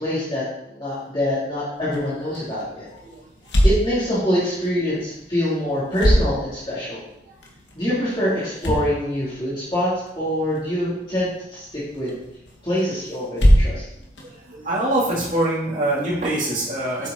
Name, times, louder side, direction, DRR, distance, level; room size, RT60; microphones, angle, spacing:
voice 1, 0.0-3.0 3.6-7.0 7.7-12.1 12.6-13.8, equal, 25° left, -10 dB, 2.7 m, -25 dB
sound 1, 1.7-15.3, equal, 80° left, 1.7 m, -26 dB
voice 2, 14.6-17.1, right 1 dB, 45° right, -5 dB, 2.7 m, -23 dB
8.4 x 6.8 x 3.9 m, 0.83 s
head